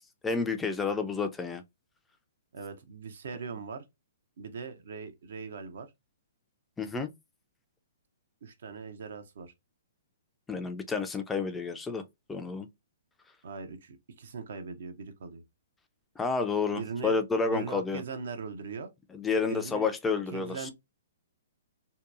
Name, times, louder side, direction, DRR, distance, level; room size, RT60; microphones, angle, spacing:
voice 1, 0.2-1.6 6.8-7.1 10.5-12.0 12.3-12.7 16.2-18.0 19.1-20.7, left 4 dB, 10° left, 0.4 m, -30 dB
voice 2, 2.5-3.8 4.4-5.9 8.4-9.5 13.4-15.4 16.7-17.2 17.5-18.9 19.5-19.9 20.3-20.7, right 5 dB, 65° right, 0.6 m, -40 dB
2.8 x 2.2 x 2.3 m
hypercardioid pair, 130°, 0 cm